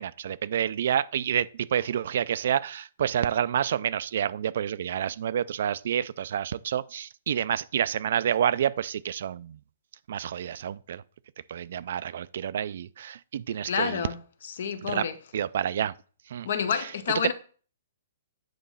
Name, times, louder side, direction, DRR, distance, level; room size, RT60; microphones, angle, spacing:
voice 1, 0.0-9.6 10.1-11.0 11.5-14.0 14.8-15.1 15.3-15.9 16.3-16.5, right 9 dB, 60° right, 0.4 m, -28 dB
voice 2, 13.6-14.2 14.4-15.2 16.4-17.3, left 7 dB, 65° left, 0.9 m, -29 dB
8.8 x 3.0 x 5.6 m
hypercardioid pair, 160°, 0 cm